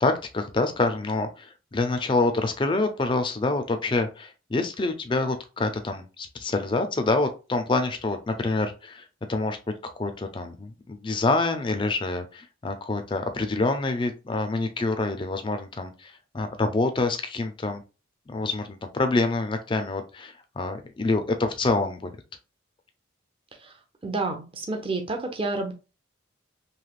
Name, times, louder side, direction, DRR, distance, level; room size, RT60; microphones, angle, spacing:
voice 1, 0.0-9.6 10.0-17.8 18.3-22.1, left 3 dB, 25° left, 7 dB, 0.4 m, -26 dB
voice 2, 24.0-25.7, right 3 dB, 30° right, 3 dB, 0.6 m, -29 dB
3.2 x 2.8 x 2.4 m, 0.32 s
head